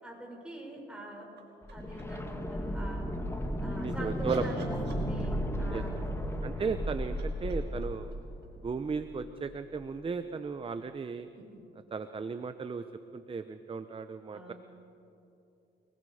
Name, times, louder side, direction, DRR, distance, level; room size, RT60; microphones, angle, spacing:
voice 1, 0.0-1.3 1.7-3.0 3.6-6.1 14.3-14.6, right 1 dB, 5° right, -2 dB, 6.6 m, -44 dB
sound 1, 1.4-2.3 3.7-5.6 6.7-9.2 11.3-11.4, right 4 dB, 60° right, 5.3 m, -56 dB
sound 2, 1.6-9.5 9.7-9.8, equal, 15° left, 1.8 m, -35 dB
voice 2, 3.8-4.4 5.7-5.8 6.4-8.1 8.6-11.3 11.9-12.8 13.1-14.5, right 5 dB, 25° right, 10 dB, 0.8 m, -35 dB
29.5 x 20.5 x 5.0 m, 2.8 s
cardioid pair, 90°, 20 cm